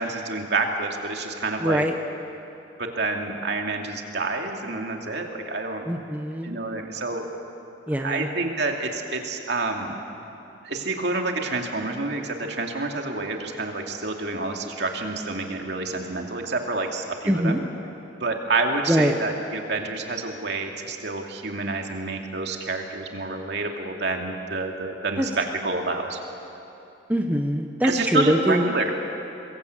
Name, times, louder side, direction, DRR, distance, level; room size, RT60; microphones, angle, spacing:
voice 1, 0.0-1.8 2.8-5.8 6.4-7.2 8.0-10.0 10.6-17.6 18.2-26.2 27.8-28.9, right 3 dB, 60° right, 2 dB, 2.6 m, -28 dB
voice 2, 1.6-1.9 5.9-6.6 7.9-8.3 17.3-17.6 18.9-19.1 25.2-25.3 27.1-28.6, equal, 10° right, 4 dB, 0.9 m, -23 dB
24.5 x 22.0 x 8.3 m, 2.9 s
head